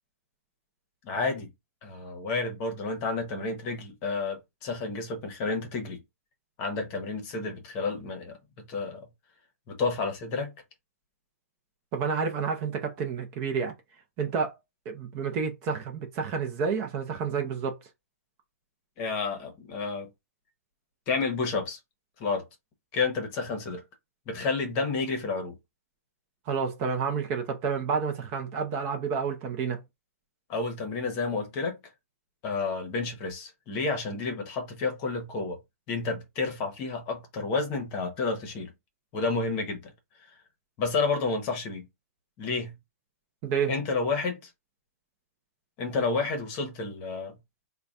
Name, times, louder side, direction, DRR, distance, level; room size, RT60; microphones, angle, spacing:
voice 1, 1.0-1.5 1.8-6.0 6.6-9.0 9.7-10.5 19.0-20.1 21.1-21.8 22.2-22.5 22.9-23.8 24.3-25.5 30.5-31.8 32.4-35.6 35.9-38.7 39.1-39.9 40.8-41.8 42.4-42.7 43.7-44.5 45.8-47.4, left 4 dB, 25° left, 1.0 m, -30 dB
voice 2, 11.9-13.7 14.2-14.5 14.9-17.8 26.5-29.8 43.4-43.7, right 5 dB, 25° right, 0.6 m, -29 dB
3.9 x 2.3 x 3.6 m
hypercardioid pair, 155°, 8 cm